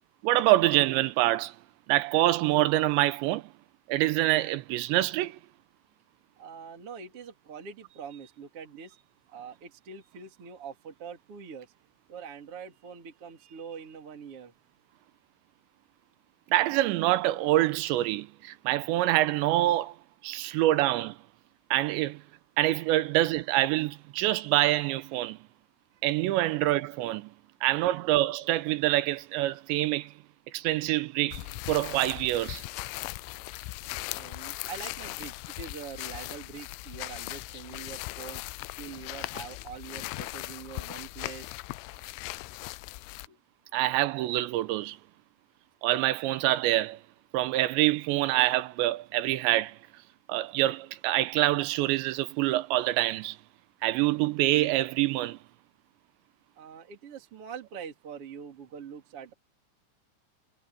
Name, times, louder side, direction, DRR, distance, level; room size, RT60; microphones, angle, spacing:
voice 1, 0.2-1.6 1.9-3.5 3.9-5.4 16.5-20.0 20.2-21.2 21.7-22.2 22.6-25.4 26.0-27.3 27.6-30.1 30.5-32.6 43.7-45.0 45.8-47.0 47.3-49.8 50.3-53.4 53.8-55.4, right 16 dB, 80° right, 2.8 m, -26 dB
voice 2, 6.4-9.0 9.3-11.7 12.1-14.5 20.2-20.6 34.1-38.4 38.8-41.5 43.3-43.4 56.6-59.3, right 6 dB, 35° right, 3.2 m, -44 dB
sound 1, 31.3-43.3, left 22 dB, 85° left, 3.0 m, -39 dB
omnidirectional pair, 5.6 m